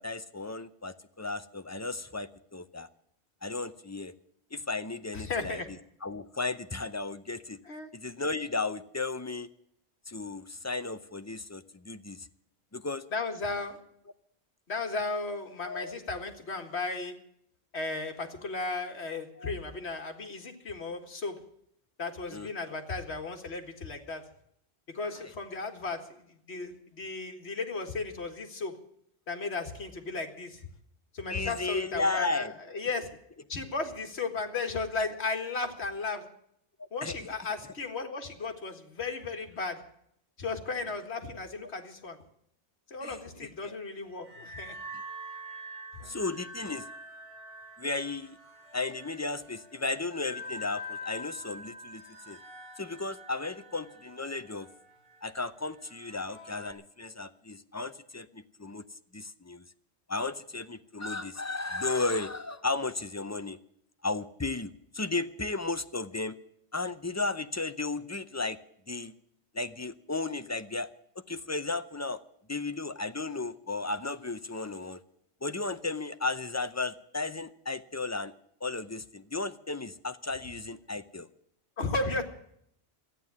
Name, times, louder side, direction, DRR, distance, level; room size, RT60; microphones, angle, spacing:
voice 1, 0.0-2.9 3.4-4.1 4.5-5.6 6.0-7.6 7.9-9.5 10.1-12.3 12.7-13.0 15.6-16.0 18.6-18.7 19.4-19.5 22.3-22.5 25.2-25.3 31.3-32.5 36.8-37.2 41.6-41.7 43.0-43.8 46.0-46.9 47.8-48.4 48.7-52.4 52.8-54.7 55.2-59.6 60.1-63.6 64.0-66.4 66.7-68.6 68.9-69.1 69.5-70.9 71.3-72.2 72.5-75.0 75.4-78.3 78.6-81.3, left 3 dB, 20° left, 10 dB, 0.5 m, -34 dB
voice 2, 5.1-5.7 7.7-7.9 13.1-13.8 14.7-17.1 17.7-21.4 22.0-24.2 24.9-26.2 26.5-28.7 29.3-30.7 31.1-32.5 32.7-33.1 33.5-36.2 36.9-39.8 40.4-42.2 42.9-44.8 46.0-46.2 81.8-82.2, left 3 dB, 75° left, 5 dB, 2.0 m, -35 dB
sound 1, 44.1-56.7, equal, 55° right, 3.0 m, -45 dB
13.5 x 9.3 x 9.6 m, 0.70 s
omnidirectional pair, 1.1 m